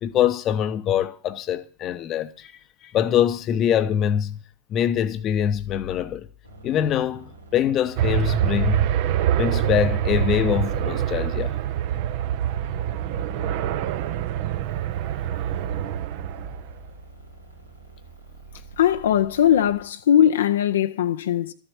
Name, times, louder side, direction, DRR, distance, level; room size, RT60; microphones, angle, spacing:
voice 1, 0.0-2.5 2.8-4.4 4.7-6.3 6.6-8.9 9.4-11.6, left 9 dB, 30° left, 0.9 m, -24 dB
sound 1, 6.4-19.8, right 1 dB, 85° right, 3.1 m, -45 dB
sound 2, 8.0-16.7, right 11 dB, 50° right, 0.9 m, -25 dB
voice 2, 18.8-21.5, left 10 dB, 60° left, 0.7 m, -20 dB
13.5 x 7.3 x 8.5 m
figure-of-eight pair, 90°, 0 cm